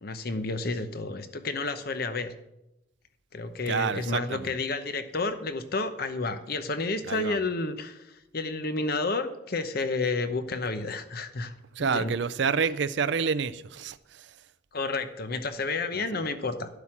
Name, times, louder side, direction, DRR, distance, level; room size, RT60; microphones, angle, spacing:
voice 1, 0.0-2.3 3.3-8.1 8.3-11.5 11.8-12.2 14.7-16.7, left 3 dB, 50° left, 0.9 m, -30 dB
voice 2, 3.7-4.5 7.0-7.4 11.7-14.4 15.9-16.3, right 6 dB, 60° right, 0.5 m, -29 dB
11.5 x 8.2 x 5.9 m
head